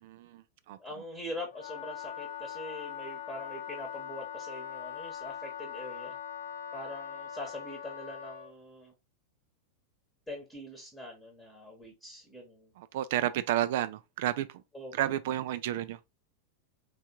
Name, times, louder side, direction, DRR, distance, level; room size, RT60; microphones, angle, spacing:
voice 1, 0.0-0.8 12.8-14.6 14.9-16.0, right 12 dB, 50° right, 0.3 m, -31 dB
voice 2, 0.8-6.2 6.7-8.9 10.3-12.7 14.7-14.9, left 1 dB, 5° left, 1.1 m, -43 dB
Wind instrument woodwind instrument, 1.5-8.5, left 8 dB, 60° left, 0.4 m, -41 dB
3.4 x 3.3 x 2.9 m
figure-of-eight pair, 90°, 0 cm